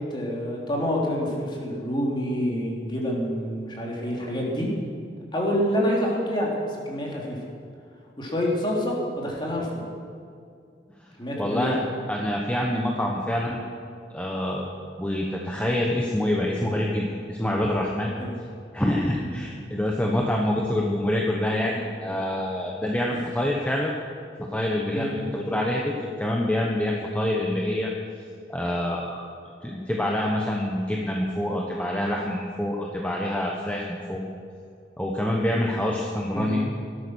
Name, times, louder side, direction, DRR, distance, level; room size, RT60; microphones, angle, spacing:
voice 1, 0.1-4.7 5.3-7.4 8.2-9.8 11.2-11.8 18.2-18.3 19.2-19.4 23.1-23.3 24.9-25.1 36.3-36.5, equal, 25° left, -3 dB, 3.4 m, -27 dB
voice 2, 11.0-13.6 14.1-14.7 15.0-18.1 18.7-23.9 24.4-27.9 28.5-29.3 29.6-34.2 35.0-36.6, left 1 dB, 10° left, -2 dB, 1.2 m, -26 dB
17.5 x 12.5 x 6.4 m, 2.3 s
head